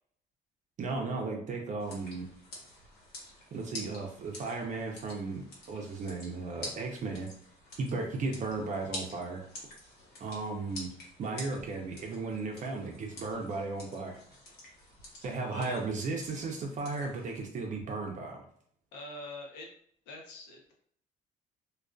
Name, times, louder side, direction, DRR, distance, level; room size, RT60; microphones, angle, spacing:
voice 1, 0.8-2.3 3.5-7.3 7.8-9.4 10.2-10.9 11.2-14.2 15.2-18.4, right 3 dB, 45° right, 1 dB, 0.6 m, -35 dB
sound 1, 1.8-17.4, left 1 dB, 70° left, 1.1 m, -48 dB
voice 2, 15.5-15.8 18.9-19.7 20.1-20.7, left 2 dB, 85° left, 0 dB, 0.8 m, -44 dB
2.4 x 2.3 x 2.3 m, 0.62 s
cardioid pair, 110°, 17 cm